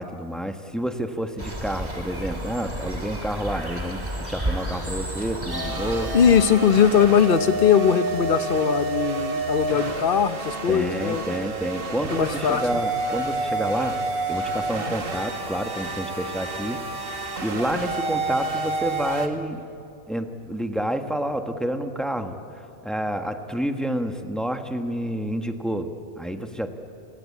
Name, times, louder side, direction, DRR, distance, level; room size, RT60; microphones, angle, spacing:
voice 1, 0.0-6.1 10.7-14.0 14.3-16.8 17.4-19.6 20.1-22.4 22.8-25.9 26.2-26.8, right 1 dB, ahead, 5 dB, 1.2 m, -29 dB
sound 1, 1.4-6.4, right 1 dB, 25° right, 2.7 m, -32 dB
sound 2, 5.5-19.3, right 2 dB, 50° right, 1.7 m, -29 dB
voice 2, 6.1-11.2 12.1-12.8, left 7 dB, 50° left, 11 dB, 1.1 m, -20 dB
30.0 x 18.0 x 8.5 m, 2.7 s
omnidirectional pair, 1.2 m